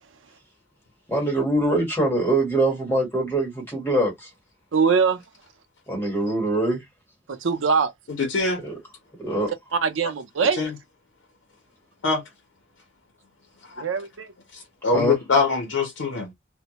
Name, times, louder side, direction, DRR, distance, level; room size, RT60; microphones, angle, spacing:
voice 1, 1.1-4.3 5.9-6.8 8.6-8.8 9.2-9.5 14.9-15.2, right 1 dB, 10° left, 1.2 m, -23 dB
voice 2, 4.7-5.2 7.3-7.9 9.7-10.6 13.8-14.3, right 5 dB, 85° right, 0.5 m, -22 dB
voice 3, 8.2-8.6 10.6-10.7 12.0-12.2 14.8-16.3, left 4 dB, 75° left, 0.6 m, -22 dB
2.1 x 2.1 x 2.8 m
head